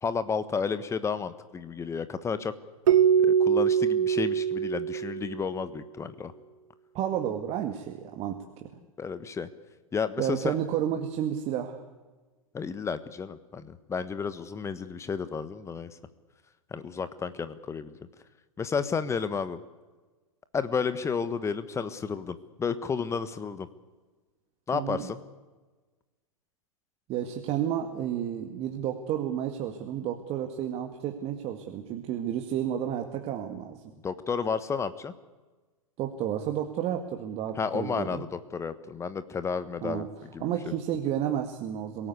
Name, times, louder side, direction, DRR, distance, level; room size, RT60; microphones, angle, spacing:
voice 1, 0.0-2.5 3.2-6.3 9.0-9.5 9.9-10.6 12.5-15.9 16.7-18.0 18.6-19.6 20.5-23.7 24.7-25.2 34.0-35.1 37.6-40.1 40.3-40.5, left 5 dB, 15° left, 12 dB, 1.4 m, -32 dB
Keyboard (musical), 2.9-5.7, right 8 dB, 65° right, 1.3 m, -23 dB
voice 2, 6.9-8.7 10.2-11.8 24.7-25.0 27.1-33.8 36.0-38.2 39.8-40.1 40.4-42.1, right 10 dB, 35° right, 5 dB, 2.0 m, -31 dB
27.0 x 18.0 x 8.3 m, 1.3 s
figure-of-eight pair, 105°, 18 cm